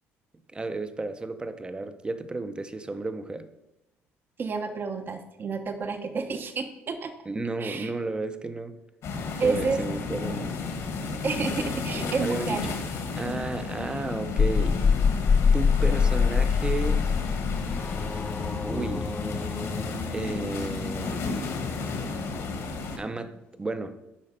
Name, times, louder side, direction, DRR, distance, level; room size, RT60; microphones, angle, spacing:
voice 1, 0.5-3.5 7.3-8.8 9.4-10.6 12.2-12.8 13.2-14.8 15.5-17.1 18.7-19.1 20.1-21.2 23.0-24.0, right 3 dB, 20° right, 11 dB, 0.7 m, -33 dB
voice 2, 4.4-7.1 7.6-7.9 9.4-9.8 11.2-12.7, right 4 dB, 40° right, 7 dB, 0.9 m, -30 dB
sound 1, 9.0-23.0, left 4 dB, 65° left, 1.7 m, -33 dB
sound 2, 14.4-18.4, left 6 dB, 40° left, 0.3 m, -23 dB
sound 3, 16.6-23.6, left 2 dB, 20° left, 0.7 m, -39 dB
8.6 x 5.3 x 5.1 m, 0.93 s
cardioid pair, 90°, 5 cm